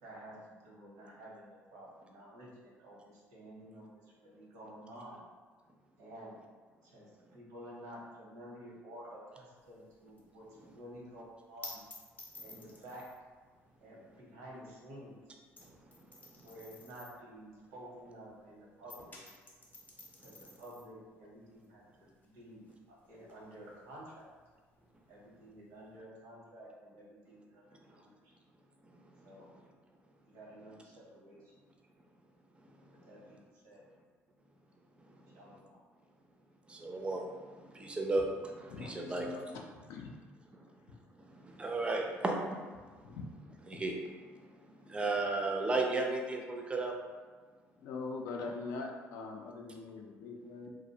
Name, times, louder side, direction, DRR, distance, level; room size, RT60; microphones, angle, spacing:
voice 1, 0.0-3.9 4.2-5.2 6.0-6.3 6.8-11.8 12.4-13.0 13.8-15.2 16.4-19.2 20.2-24.2 25.1-27.6 27.9-28.3 29.2-29.5 30.3-31.4 32.9-33.8 35.3-35.8, equal, 90° right, -4 dB, 0.8 m, -51 dB
sound 1, 9.6-18.5 18.7-26.0, left 2 dB, 30° left, 0.6 m, -54 dB
voice 2, 15.6-16.5 20.3-20.4 27.8-27.9 29.0-29.6 33.0-33.1 35.2-35.6 36.7-38.3 38.8-39.3 40.6-40.7 41.2-43.1 43.7-47.0, right 2 dB, 20° right, 1 dB, 0.4 m, -36 dB
voice 3, 38.7-39.6 39.9-40.1 43.0-43.2 47.8-50.7, left 4 dB, 80° left, 2 dB, 0.4 m, -42 dB
2.4 x 2.0 x 2.7 m, 1.5 s
supercardioid pair, 90°, 5 cm